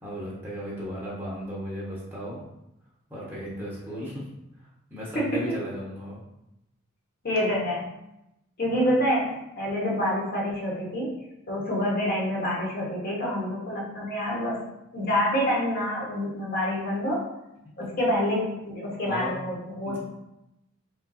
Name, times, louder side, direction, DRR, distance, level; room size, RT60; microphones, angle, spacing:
voice 1, 0.0-2.5 3.1-4.3 4.6-6.2 8.7-8.9 19.1-19.4 19.8-20.0, equal, 10° right, -7 dB, 1.2 m, -36 dB
voice 2, 5.1-5.5 7.2-7.9 8.6-14.7 14.9-17.3 17.8-20.0, equal, 45° left, -4 dB, 1.2 m, -27 dB
5.0 x 2.2 x 4.2 m, 0.87 s
head